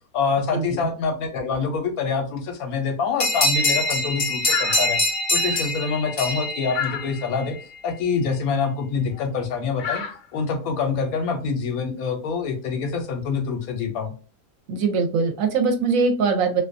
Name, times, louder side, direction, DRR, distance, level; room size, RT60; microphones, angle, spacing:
voice 1, 0.1-5.0 5.3-7.6 7.8-10.0 10.3-14.1, left 5 dB, 80° left, 5 dB, 1.1 m, -26 dB
sound 1, 3.2-7.4, left 2 dB, 45° left, 0.4 m, -24 dB
sound 2, 4.5-5.0 5.3-5.6 6.7-7.2 9.1-9.3 9.8-10.4 12.7-12.8, left 7 dB, 65° left, 0.9 m, -30 dB
voice 2, 14.7-16.6, right 4 dB, 75° right, 5 dB, 0.9 m, -21 dB
2.5 x 2.2 x 2.4 m, 0.36 s
omnidirectional pair, 1.5 m